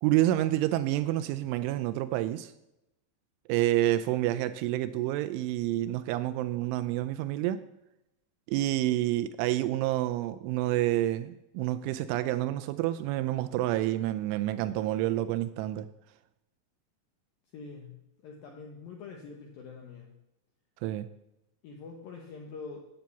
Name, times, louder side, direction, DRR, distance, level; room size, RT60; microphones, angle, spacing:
voice 1, 0.0-2.5 3.5-7.6 8.5-15.9 20.8-21.1, right 14 dB, 85° right, 2.9 m, -28 dB
voice 2, 17.5-20.1 21.6-22.8, left 4 dB, 75° left, 2.1 m, -45 dB
9.2 x 8.7 x 7.0 m
omnidirectional pair, 5.7 m